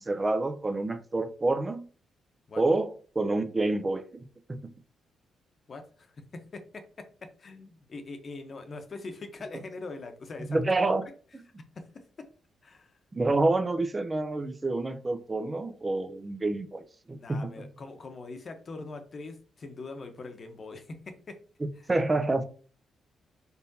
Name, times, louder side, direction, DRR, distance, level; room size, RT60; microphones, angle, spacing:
voice 1, 0.0-1.8 2.6-4.2 4.5-4.6 10.5-11.0 13.1-16.8 17.1-17.6 21.9-22.4, right 2 dB, 25° right, 0.6 m, -28 dB
voice 2, 5.7-11.0 11.7-12.3 12.6-12.9 17.2-21.4 21.8-21.9, left 3 dB, 45° left, 0.9 m, -43 dB
4.2 x 3.6 x 2.8 m
cardioid pair, 70°, 0 cm